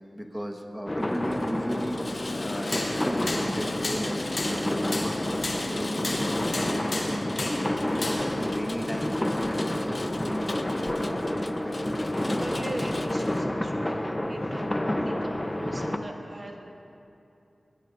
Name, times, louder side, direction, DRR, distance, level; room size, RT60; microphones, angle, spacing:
voice 1, 0.1-2.0 2.4-6.2 6.6-7.3 8.3-10.6 11.0-11.9 12.1-12.5, equal, 5° right, 2 dB, 1.4 m, -36 dB
sound 1, 0.9-16.0, left 1 dB, 20° left, 0.8 m, -29 dB
Rain, 1.1-13.4, left 2 dB, 40° left, 0.5 m, -40 dB
sound 2, 2.3-8.4, left 2 dB, 70° left, 2.5 m, -33 dB
voice 2, 12.1-16.6, right 1 dB, 40° right, 0 dB, 1.9 m, -40 dB
21.5 x 19.5 x 2.6 m, 2.8 s
wide cardioid pair, 90°, 0 cm